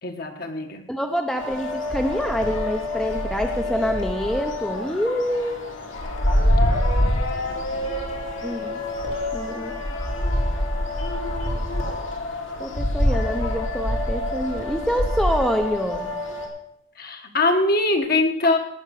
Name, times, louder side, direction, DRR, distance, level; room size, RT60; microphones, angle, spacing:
voice 1, 0.0-0.8 7.5-7.9 17.0-18.6, left 2 dB, 45° left, 4 dB, 1.6 m, -23 dB
voice 2, 0.9-5.6 8.4-8.8 9.3-9.7 12.6-16.1, equal, 5° left, 3 dB, 0.8 m, -26 dB
sound 1, 1.4-16.5, left 1 dB, 70° left, 2.8 m, -26 dB
18.0 x 6.4 x 6.5 m, 0.75 s
head